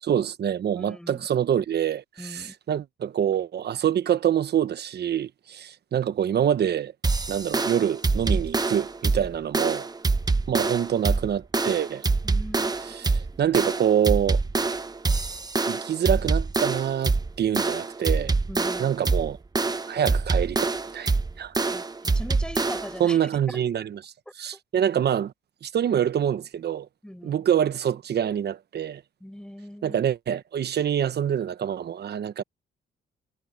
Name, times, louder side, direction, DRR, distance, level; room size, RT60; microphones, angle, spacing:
voice 1, 0.0-6.9 7.3-9.9 10.5-12.1 12.8-14.4 15.7-18.3 18.8-19.4 19.9-20.7 20.9-21.1 21.4-21.5 23.0-25.3 25.6-26.9 27.2-29.0 29.8-32.4, right 9 dB, 55° right, 1.1 m, -26 dB
voice 2, 0.8-1.3 2.2-2.5 12.2-12.7 13.0-13.4 18.5-18.9 21.7-21.9 22.1-23.2 23.5-23.6 27.0-27.4 29.2-30.0, equal, 5° left, 7.5 m, -40 dB
sound 1, 7.0-23.0, right 3 dB, 20° right, 1.0 m, -25 dB
cardioid pair, 90°, 20 cm